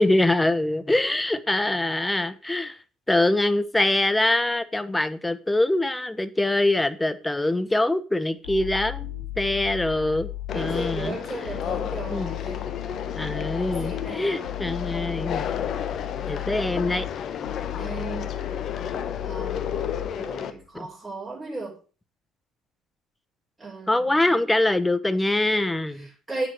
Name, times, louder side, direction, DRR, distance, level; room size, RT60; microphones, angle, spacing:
voice 1, 0.0-2.8 3.1-9.1 9.4-11.2 12.1-12.3 13.2-15.4 16.3-17.1 20.7-20.9 23.9-26.1, left 2 dB, 10° left, 13 dB, 1.2 m, -24 dB
sound 1, 8.4-20.6, left 13 dB, 85° left, 2.3 m, -35 dB
Conversation, 10.5-20.5, left 8 dB, 55° left, 1.2 m, -32 dB
voice 2, 10.5-12.7 13.2-14.6 16.2-16.5 17.8-18.3 19.2-19.8 20.0-21.7 23.6-24.3 26.3-26.5, right 3 dB, 15° right, -7 dB, 6.4 m, -36 dB
8.7 x 7.9 x 6.6 m, 0.37 s
hypercardioid pair, 55°, 0 cm